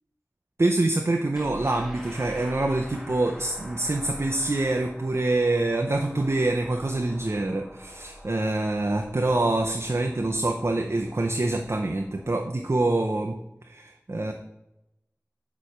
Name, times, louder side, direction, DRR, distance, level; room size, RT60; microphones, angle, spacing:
voice 1, 0.6-13.4 13.7-14.3, right 2 dB, 50° right, 3 dB, 0.5 m, -25 dB
sound 1, 1.3-12.3, equal, 5° right, 0.9 m, -45 dB
6.4 x 3.1 x 5.5 m, 0.89 s
wide cardioid pair, 45°, 6 cm